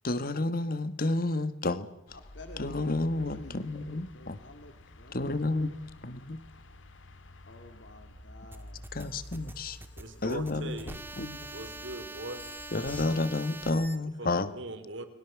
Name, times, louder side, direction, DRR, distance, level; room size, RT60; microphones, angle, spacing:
voice 1, 0.0-1.9 2.6-4.4 5.1-5.7 6.0-6.4 8.9-9.8 10.2-11.5 12.7-14.5, left 2 dB, 50° left, 13 dB, 1.5 m, -31 dB
sound 1, 2.1-12.8, left 1 dB, 80° left, 2.1 m, -50 dB
voice 2, 2.1-5.9 7.4-8.9, left 2 dB, 65° left, 6 dB, 2.3 m, -51 dB
sound 2, 8.5-13.7, right 2 dB, 10° right, 1.8 m, -44 dB
sound 3, 9.0-14.0, left 1 dB, 10° left, 2.2 m, -51 dB
voice 3, 10.0-11.0 11.5-12.5 14.2-15.1, right 2 dB, 75° right, 9 dB, 3.3 m, -40 dB
30.0 x 21.5 x 7.3 m, 0.90 s
head